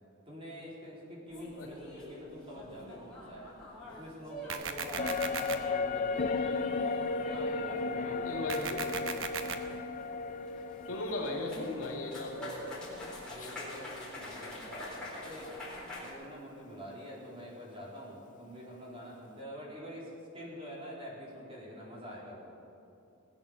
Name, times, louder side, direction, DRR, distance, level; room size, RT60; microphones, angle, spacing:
voice 1, 0.3-3.5 3.9-6.6 7.0-8.8 13.3-15.5 16.0-22.5, equal, 25° right, -5 dB, 3.7 m, -46 dB
sound 1, 1.3-16.1, left 1 dB, 5° left, 3.9 m, -46 dB
sound 2, 4.5-5.5 8.5-9.5, right 6 dB, 65° right, 1.0 m, -36 dB
sound 3, 5.0-14.5 14.8-14.9, left 4 dB, 40° left, 0.5 m, -35 dB
voice 2, 8.2-8.8 10.9-12.8 13.4-13.5, left 1 dB, 75° left, 0 dB, 2.7 m, -37 dB
19.5 x 8.7 x 6.7 m, 2.8 s
head